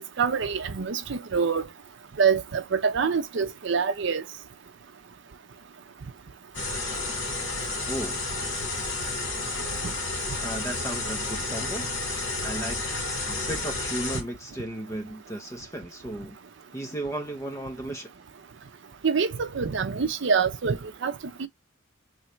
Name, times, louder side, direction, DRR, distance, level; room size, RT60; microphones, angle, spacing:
voice 1, 0.2-1.7 2.2-4.2 9.8-9.9 19.0-21.1 21.4-21.5, right 6 dB, 65° right, 0.6 m, -25 dB
sound 1, 6.5-14.2, left 2 dB, 75° left, 1.9 m, -31 dB
voice 2, 7.9-8.2 10.4-11.9 12.4-12.8 13.3-16.4 16.7-18.1, right 1 dB, 15° left, 0.8 m, -35 dB
3.2 x 2.6 x 4.4 m
head